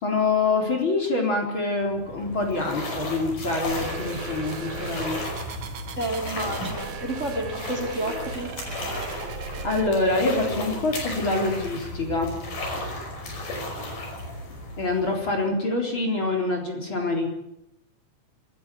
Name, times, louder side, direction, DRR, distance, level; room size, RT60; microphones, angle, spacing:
voice 1, 0.0-5.2 9.6-12.3 14.8-17.4, left 3 dB, 40° left, 1 dB, 4.7 m, -25 dB
sound 1, 1.8-15.6, left 1 dB, 85° left, 7.0 m, -34 dB
sound 2, 3.7-9.9, right 6 dB, 75° right, 3.2 m, -38 dB
voice 2, 6.0-8.5, right 1 dB, 20° right, 3 dB, 4.0 m, -30 dB
25.5 x 14.0 x 9.4 m, 0.83 s
omnidirectional pair, 3.7 m